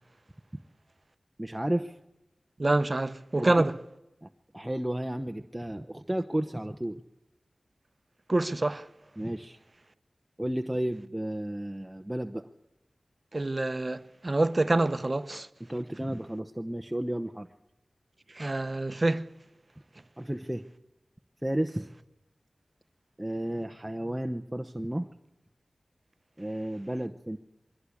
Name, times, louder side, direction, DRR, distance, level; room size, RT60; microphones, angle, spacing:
voice 1, 1.4-2.0 3.4-3.6 4.2-7.0 9.2-9.6 10.4-12.5 15.7-17.5 20.2-20.6 21.4-21.9 23.2-25.1 26.4-27.4, right 1 dB, 10° right, 1.0 m, -32 dB
voice 2, 2.6-3.7 8.3-8.9 13.3-15.5 18.3-19.3, right 2 dB, 40° right, 0.9 m, -26 dB
22.5 x 16.5 x 8.5 m
wide cardioid pair, 55°, 0 cm